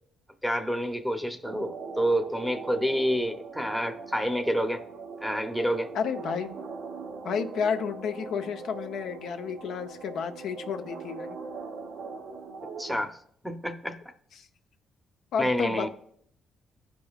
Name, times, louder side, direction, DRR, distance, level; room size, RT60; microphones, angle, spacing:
voice 1, 0.4-4.8 5.2-5.9 12.8-13.2 13.4-14.0 15.4-15.9, equal, ahead, 6 dB, 0.8 m, -28 dB
sound 1, 1.4-13.0, right 4 dB, 75° right, 0.9 m, -41 dB
voice 2, 5.9-6.5 7.2-11.4 15.3-15.9, left 6 dB, 75° left, 6 dB, 0.7 m, -31 dB
15.5 x 5.2 x 2.4 m, 0.67 s
cardioid pair, 90°, 0 cm